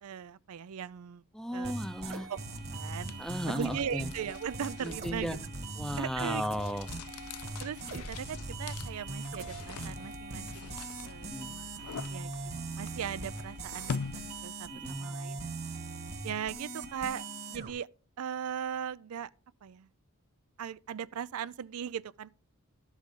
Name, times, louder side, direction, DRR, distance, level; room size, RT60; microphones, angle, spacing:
voice 1, 0.0-1.2 1.5-1.7 2.1-2.4 2.7-5.4 6.0-6.4 7.6-11.8 12.1-12.3 12.8-15.5 16.2-17.9 18.2-19.3 19.6-19.9 20.6-22.3, right 8 dB, 80° right, 0.4 m, -39 dB
voice 2, 1.3-2.3 3.2-4.1 4.8-5.4 5.8-6.9 11.3-11.5 14.7-15.0, equal, ahead, 0.6 m, -35 dB
sound 1, 1.6-17.7, right 3 dB, 45° right, 1.4 m, -41 dB
sound 2, 2.3-14.7, left 6 dB, 90° left, 0.4 m, -45 dB
12.5 x 7.2 x 3.7 m
head